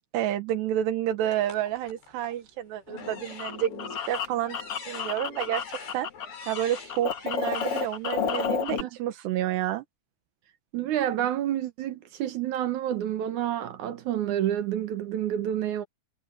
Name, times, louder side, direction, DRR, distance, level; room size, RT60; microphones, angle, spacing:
voice 1, 0.1-4.6 4.9-6.1 6.5-9.8, right 12 dB, 85° right, 3.5 m, -29 dB
sound 1, 1.3-2.4 2.9-8.5, left 4 dB, 80° left, 9.3 m, -45 dB
sound 2, 2.9-6.2 6.5-8.8, left 7 dB, 65° left, 1.4 m, -31 dB
voice 2, 10.7-15.8, right 11 dB, 65° right, 2.0 m, -29 dB
omnidirectional pair, 4.8 m